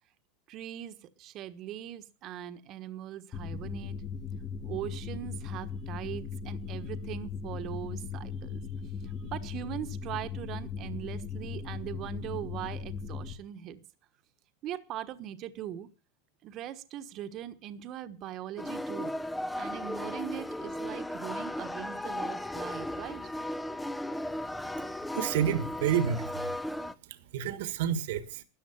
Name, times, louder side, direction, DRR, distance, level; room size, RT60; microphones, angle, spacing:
voice 1, 0.5-4.0 4.6-13.8 14.6-15.9 16.4-19.1 19.5-23.2, right 11 dB, 40° right, 1.2 m, -41 dB
sound 1, 3.3-13.3, left 6 dB, 20° left, 1.3 m, -38 dB
sound 2, 18.6-26.9, left 1 dB, 5° left, 0.6 m, -36 dB
voice 2, 24.9-26.5 27.0-28.4, right 9 dB, 75° right, 1.6 m, -30 dB
13.5 x 9.7 x 7.0 m
supercardioid pair, 140°, 0 cm